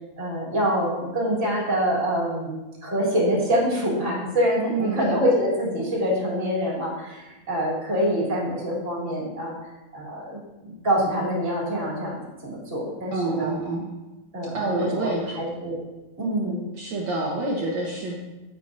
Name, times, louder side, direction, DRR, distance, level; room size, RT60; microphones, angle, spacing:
voice 1, 0.2-2.5 2.8-9.6 9.9-13.5 14.3-15.7 16.2-16.6, equal, 20° right, -5 dB, 3.3 m, -25 dB
voice 2, 4.7-5.2 13.1-13.8 14.5-15.4 16.7-18.2, right 3 dB, 65° right, -3 dB, 1.9 m, -27 dB
9.9 x 9.9 x 2.7 m, 1.1 s
omnidirectional pair, 4.5 m